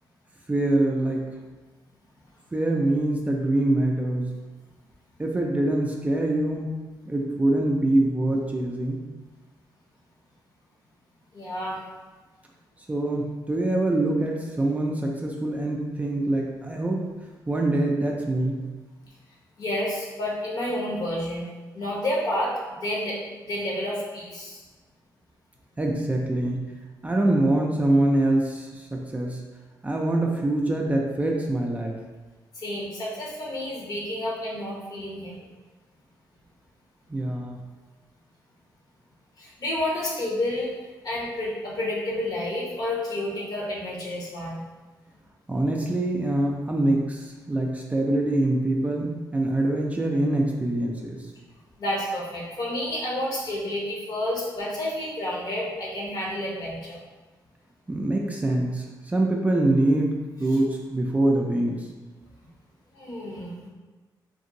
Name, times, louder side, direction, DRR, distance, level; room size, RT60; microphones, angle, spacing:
voice 1, 0.5-1.4 2.5-4.4 5.2-6.7 7.1-9.0 12.9-17.0 17.5-18.6 25.8-26.7 27.0-29.4 29.8-32.0 37.1-37.6 45.5-51.3 57.9-61.9, right 1 dB, 20° right, -1 dB, 0.4 m, -24 dB
voice 2, 11.3-11.8 19.6-21.5 21.7-24.6 32.6-35.5 39.4-40.7 41.0-44.6 51.8-57.0 62.9-63.7, left 1 dB, 50° left, -4 dB, 1.0 m, -30 dB
2.7 x 2.6 x 2.7 m, 1.2 s
cardioid pair, 75°, 8 cm